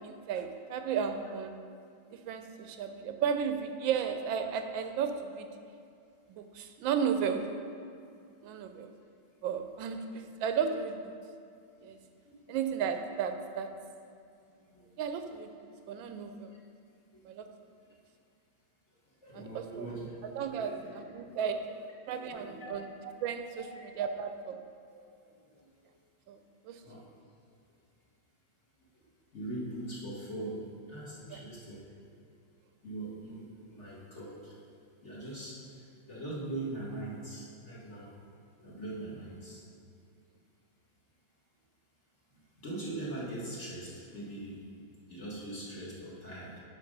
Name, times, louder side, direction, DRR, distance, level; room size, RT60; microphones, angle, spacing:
voice 1, 0.0-1.6 2.1-5.5 6.3-7.6 8.4-8.9 9.4-11.2 11.8-12.0 12.5-13.8 15.0-15.5 15.9-16.5 17.2-17.5 19.3-19.9 20.4-21.7 22.1-22.9 23.2-24.6 26.3-26.4 26.6-26.8 31.3-31.4, right 7 dB, 80° right, 8 dB, 1.3 m, -34 dB
voice 2, 2.3-2.8 12.2-12.6 14.6-15.0 16.1-16.4 17.1-17.2 19.2-20.1 20.5-20.9 21.3-21.5 22.2-22.7 24.9-25.0 25.2-25.9 26.8-27.0 28.9-29.1 29.3-31.9 32.8-34.6 35.0-38.1 38.6-39.6 42.3-44.6 45.1-46.6, right 2 dB, 40° left, -6 dB, 1.8 m, -42 dB
10.5 x 4.3 x 5.2 m, 2.4 s
omnidirectional pair, 2.1 m